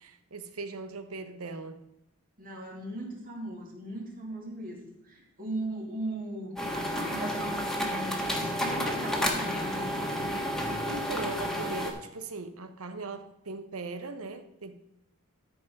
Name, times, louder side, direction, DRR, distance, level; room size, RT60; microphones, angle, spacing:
voice 1, 0.0-1.8 10.9-14.7, right 3 dB, 85° right, 1.0 m, -39 dB
voice 2, 2.4-10.0, right 1 dB, 40° right, 2.6 m, -38 dB
sound 1, 6.6-11.9, equal, ahead, 1.5 m, -31 dB
13.5 x 4.9 x 5.3 m
head